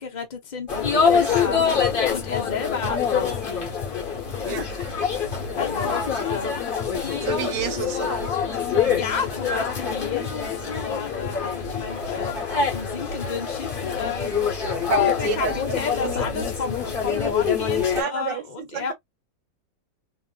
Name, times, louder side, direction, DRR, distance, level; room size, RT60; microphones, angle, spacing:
voice 1, 0.0-1.6 2.1-3.7 5.6-6.5 8.9-18.9, left 5 dB, 80° left, 0.4 m, -32 dB
sound 1, 0.7-18.0, left 6 dB, 35° left, 1.0 m, -25 dB
voice 2, 1.1-1.7 4.5-4.7 7.2-8.3 8.7-9.0 14.9-15.7 16.0-16.1 17.9-18.4 18.7-18.9, right 9 dB, 75° right, 1.3 m, -30 dB
3.1 x 2.6 x 2.2 m
omnidirectional pair, 2.0 m